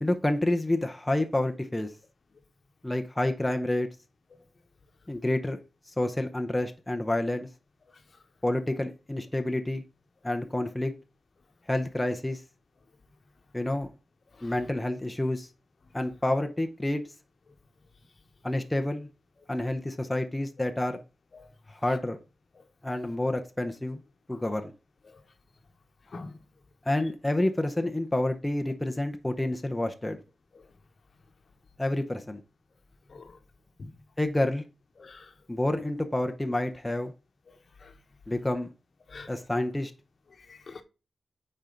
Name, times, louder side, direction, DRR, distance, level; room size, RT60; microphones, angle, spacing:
voice 1, 0.0-1.9 2.8-3.9 5.1-5.6 6.0-7.5 8.4-9.8 10.2-10.9 11.7-12.4 13.5-13.9 14.4-15.5 15.9-17.0 18.4-19.1 19.5-21.0 21.7-22.2 22.8-24.0 24.3-24.7 26.9-30.2 31.8-32.4 34.2-34.6 35.5-37.1 38.3-38.7 39.3-39.9, left 1 dB, 10° left, 0.7 m, -28 dB
voice 2, 35.0-35.3 37.8-37.9 39.1-39.3 40.5-40.8, left 3 dB, 55° left, 1.1 m, -44 dB
8.8 x 4.5 x 3.8 m
wide cardioid pair, 95°, 0 cm